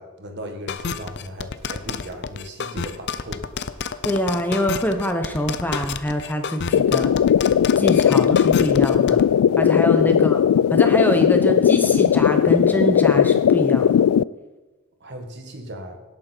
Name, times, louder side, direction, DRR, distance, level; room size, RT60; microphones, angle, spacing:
voice 1, 0.0-3.4 10.1-10.2 15.0-16.0, equal, 50° right, 5 dB, 1.7 m, -37 dB
sound 1, 0.7-9.2, left 5 dB, 50° left, 0.6 m, -29 dB
voice 2, 4.0-7.1 7.8-9.2 9.6-10.4 10.7-14.0, equal, 10° left, 5 dB, 0.8 m, -24 dB
sound 2, 6.7-14.2, left 9 dB, 85° left, 0.3 m, -17 dB
17.5 x 9.0 x 4.5 m, 1.2 s
head